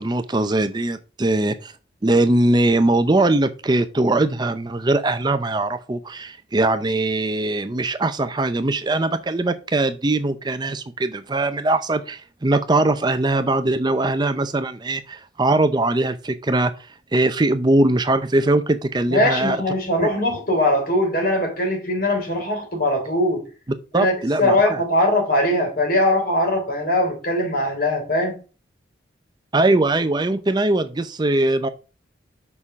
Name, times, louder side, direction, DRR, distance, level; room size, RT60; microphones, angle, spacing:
voice 1, 0.0-1.7 2.0-16.7 17.1-19.6 23.9-24.8 29.5-31.7, right 2 dB, 25° right, 0.5 m, -21 dB
voice 2, 19.1-23.4 23.9-28.4, left 1 dB, 50° left, 3.3 m, -21 dB
6.6 x 5.5 x 6.0 m
head